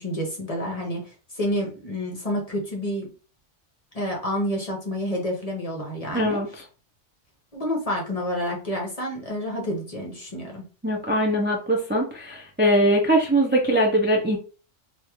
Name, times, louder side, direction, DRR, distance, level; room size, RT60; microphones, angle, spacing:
voice 1, 0.0-3.1 3.9-6.4 7.5-10.6, equal, 35° left, 0 dB, 0.9 m, -29 dB
voice 2, 6.1-6.6 10.8-14.4, right 1 dB, 10° right, -1 dB, 0.5 m, -21 dB
3.5 x 2.6 x 3.0 m, 0.37 s
omnidirectional pair, 1.2 m